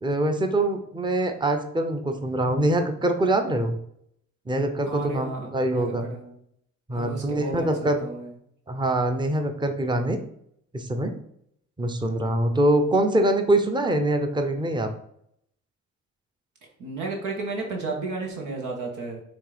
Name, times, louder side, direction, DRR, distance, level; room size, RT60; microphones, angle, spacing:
voice 1, 0.0-3.7 4.5-6.1 6.9-8.0 8.7-10.2 10.7-11.1 11.8-14.9, right 1 dB, 15° right, 6 dB, 0.8 m, -24 dB
voice 2, 4.8-5.5 5.7-6.4 6.9-8.3 16.8-19.2, right 3 dB, 80° right, 0 dB, 1.6 m, -33 dB
6.4 x 3.0 x 5.1 m, 0.72 s
cardioid pair, 90°, 30 cm